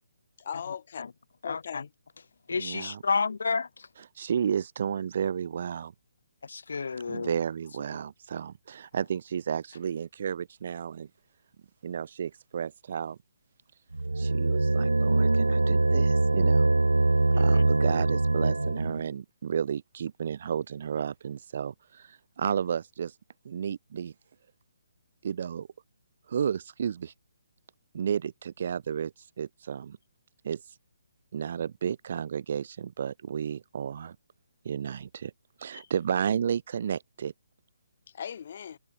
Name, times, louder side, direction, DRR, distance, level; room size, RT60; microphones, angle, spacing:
voice 1, 0.4-1.1 1.4-1.9 35.7-35.9 38.1-38.8, left 8 dB, 50° left, 3.6 m, -38 dB
voice 2, 1.4-1.8 2.5-3.7 6.5-7.3 17.3-17.6, left 5 dB, 70° left, 2.2 m, -30 dB
voice 3, 2.5-3.0 4.2-5.9 7.1-11.1 11.8-13.2 14.2-16.7 17.4-23.1 23.4-24.1 25.2-25.7 26.3-27.1 27.9-30.0 30.4-30.6 31.3-34.2 34.6-35.3 35.6-37.3, right 8 dB, 50° right, 4.5 m, -32 dB
sound 1, 13.9-19.1, right 2 dB, 90° right, 0.5 m, -23 dB
figure-of-eight pair, 145°, 0 cm